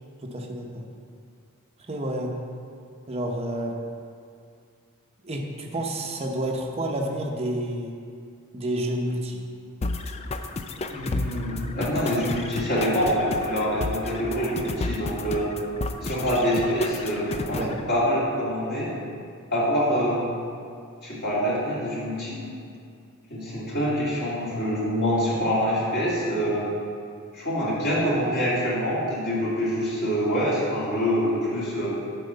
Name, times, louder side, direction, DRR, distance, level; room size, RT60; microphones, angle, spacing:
voice 1, 0.2-0.9 1.9-2.3 3.1-3.7 5.2-7.9 8.5-9.4 17.5-17.7, right 1 dB, 30° right, 0 dB, 0.8 m, -29 dB
sound 1, 9.8-17.8, left 2 dB, 30° left, 0.4 m, -32 dB
voice 2, 10.9-15.5 16.0-19.0 19.5-20.3 21.0-22.4 23.3-26.7 27.3-31.9, equal, 50° left, -8 dB, 2.5 m, -25 dB
10.0 x 4.5 x 6.8 m, 2.3 s
head